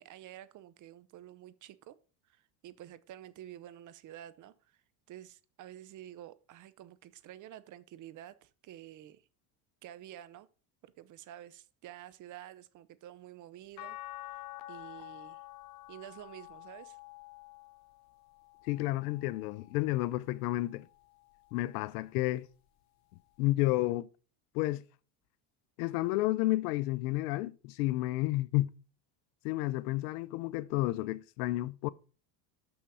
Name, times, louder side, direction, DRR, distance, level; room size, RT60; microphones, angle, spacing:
voice 1, 0.0-2.0 2.2-4.8 5.1-9.2 9.8-10.5 10.8-15.4 15.9-17.0, right 12 dB, 40° right, 0.7 m, -50 dB
sound 1, 13.8-20.1 20.6-22.0 23.4-23.5, left 18 dB, 50° left, 0.8 m, -49 dB
voice 2, 18.7-20.8 21.5-22.5 23.4-24.1 24.5-24.8 25.8-28.7 29.4-31.9, left 18 dB, 80° left, 0.6 m, -31 dB
6.4 x 5.9 x 5.4 m
supercardioid pair, 115°, 46 cm